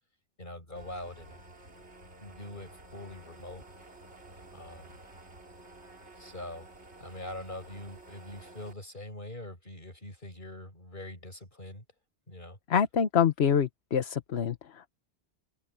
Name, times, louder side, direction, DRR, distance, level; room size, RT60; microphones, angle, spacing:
voice 1, 0.4-1.4 2.2-3.6 4.5-5.0 6.2-6.7 7.0-11.8 12.3-12.6, left 1 dB, 50° left, 8.0 m, -43 dB
sound 1, 0.8-8.7, right 2 dB, 85° right, 3.3 m, -52 dB
voice 2, 12.7-14.9, left 7 dB, 70° left, 1.2 m, -26 dB
omnidirectional pair, 1.1 m